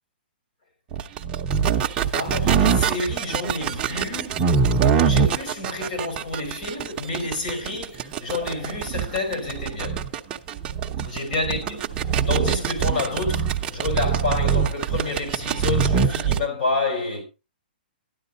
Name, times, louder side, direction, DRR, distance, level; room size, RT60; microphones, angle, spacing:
sound 1, 0.9-16.4, right 6 dB, 15° right, 0.6 m, -23 dB
voice 1, 2.1-4.5 5.0-10.1 11.0-11.8 12.3-17.2, left 3 dB, 55° left, 4.6 m, -29 dB
12.5 x 10.0 x 3.9 m
hypercardioid pair, 175°, 5 cm